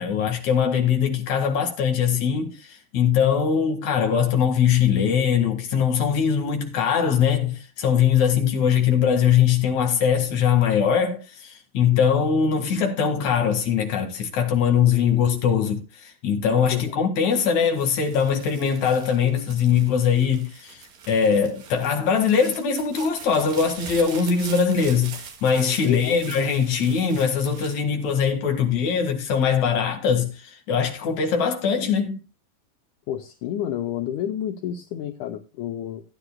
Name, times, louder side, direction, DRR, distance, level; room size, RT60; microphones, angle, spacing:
voice 1, 0.0-32.2, left 7 dB, 55° left, 2.8 m, -21 dB
sound 1, 17.3-28.7 29.2-29.8, right 6 dB, 70° right, 3.5 m, -42 dB
voice 2, 25.8-26.3 33.1-36.0, left 10 dB, 75° left, 1.9 m, -30 dB
17.5 x 9.7 x 2.2 m
omnidirectional pair, 4.1 m